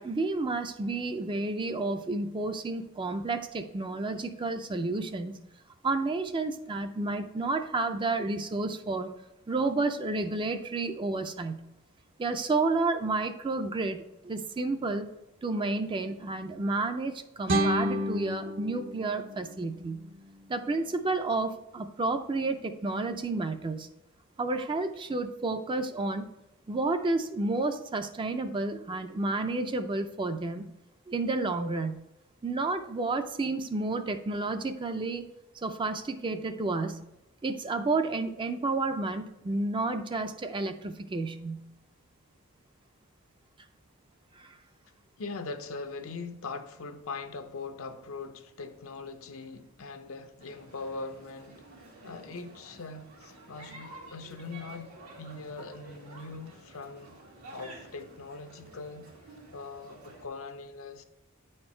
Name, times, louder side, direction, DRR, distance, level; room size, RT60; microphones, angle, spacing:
voice 1, 0.0-5.4 5.8-9.1 9.5-11.6 12.2-15.1 15.4-20.1 20.5-23.9 24.4-26.3 26.7-30.7 31.1-32.0 32.4-35.2 35.5-37.0 37.4-41.7 44.4-44.5, right 3 dB, 25° right, 0.4 m, -31 dB
sound 1, 17.5-20.5, equal, 55° right, 0.7 m, -31 dB
voice 2, 45.2-51.6 52.0-57.2 57.5-59.1 59.5-61.0, left 4 dB, 70° left, 0.6 m, -41 dB
sound 2, 50.4-60.3, right 1 dB, 90° right, 1.9 m, -50 dB
9.1 x 4.4 x 4.3 m
head